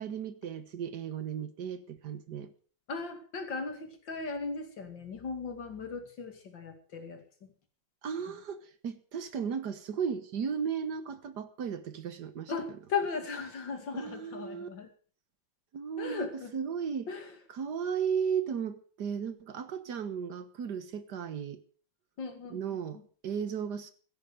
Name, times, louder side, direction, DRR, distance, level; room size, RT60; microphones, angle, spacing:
voice 1, 0.0-2.5 8.0-12.5 13.9-14.7 15.7-17.1 17.5-21.6 22.5-23.9, right 7 dB, 65° right, 1.7 m, -35 dB
voice 2, 2.9-7.5 12.5-14.9 16.0-16.5 17.1-17.3 22.2-22.6, left 5 dB, 80° left, 3.1 m, -37 dB
16.0 x 12.5 x 5.0 m
omnidirectional pair, 2.0 m